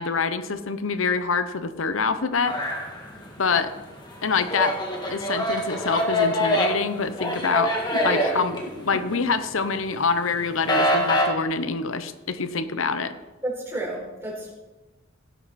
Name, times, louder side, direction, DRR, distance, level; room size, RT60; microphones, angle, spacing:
voice 1, 0.0-2.6 3.4-3.7 4.2-4.7 5.1-7.7 8.0-13.1, left 5 dB, 80° left, 11 dB, 0.8 m, -25 dB
sound 1, 2.5-3.5 3.9-9.3 9.7-11.2, equal, 20° left, 2.0 m, -25 dB
voice 2, 8.1-8.4 8.9-9.0 13.4-14.5, right 1 dB, 15° right, -3 dB, 4.6 m, -31 dB
17.5 x 11.5 x 4.2 m, 1.1 s
head